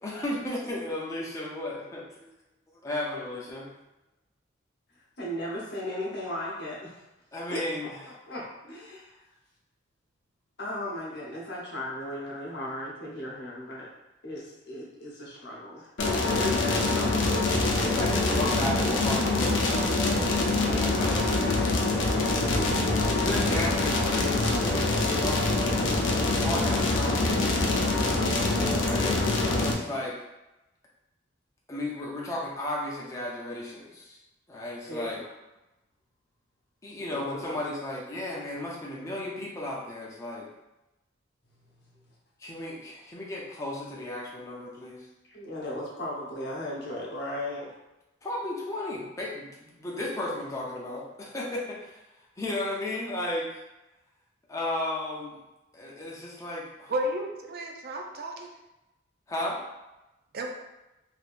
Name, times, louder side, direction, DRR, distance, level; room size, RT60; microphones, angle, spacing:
voice 1, 0.0-2.3 2.8-3.7 7.3-8.0 17.8-20.3 20.6-22.0 23.2-25.6 26.2-27.9 28.8-29.2 29.8-30.1 31.7-34.2 34.5-35.2 36.8-40.5 42.4-45.1 48.2-52.0 52.4-53.6 54.5-55.4 55.7-56.9 59.3-59.6, left 1 dB, 15° left, -4 dB, 0.5 m, -34 dB
voice 2, 5.2-7.0 7.5-9.2 10.6-13.9 14.2-15.9 16.2-17.4 34.9-35.1 37.1-37.5 45.3-47.7, left 1 dB, 60° left, -5 dB, 0.9 m, -36 dB
sound 1, 16.0-29.7, left 2 dB, 75° left, 0.6 m, -25 dB
voice 3, 56.9-58.5 60.3-60.5, right 1 dB, 50° right, 2 dB, 0.4 m, -32 dB
3.5 x 2.8 x 2.5 m, 0.99 s
head